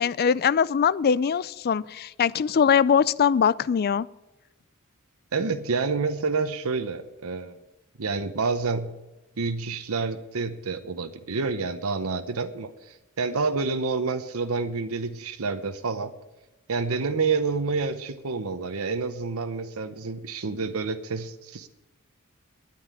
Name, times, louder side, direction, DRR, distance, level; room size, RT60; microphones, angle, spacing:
voice 1, 0.0-4.1, left 7 dB, 45° left, 20 dB, 0.4 m, -22 dB
voice 2, 5.3-7.6 8.0-9.0 9.4-16.1 16.7-21.7, right 4 dB, 85° right, 9 dB, 0.8 m, -28 dB
10.0 x 9.4 x 9.6 m, 1.1 s
head